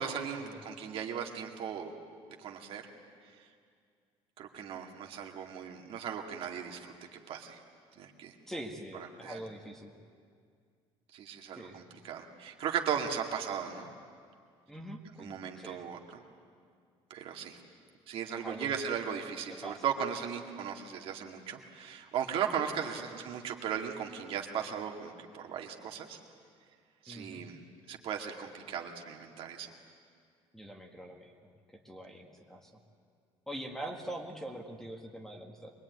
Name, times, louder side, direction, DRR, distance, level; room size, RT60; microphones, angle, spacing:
voice 1, 0.0-1.9 2.4-2.8 3.2-3.4 4.4-6.9 7.3-7.6 8.0-8.3 9.2-9.4 11.1-13.9 15.2-16.2 17.1-17.6 18.1-26.2 27.0-27.6 27.9-29.7, right 8 dB, 55° right, 2 dB, 2.2 m, -37 dB
voice 2, 8.5-10.0 11.5-11.9 14.7-15.9 18.4-18.7 19.5-19.9 23.1-23.2 27.1-27.4 30.5-31.4 31.7-32.7 33.5-35.7, right 1 dB, 5° left, 3 dB, 1.7 m, -44 dB
23.5 x 21.0 x 9.5 m, 2.2 s
cardioid pair, 155°, 11 cm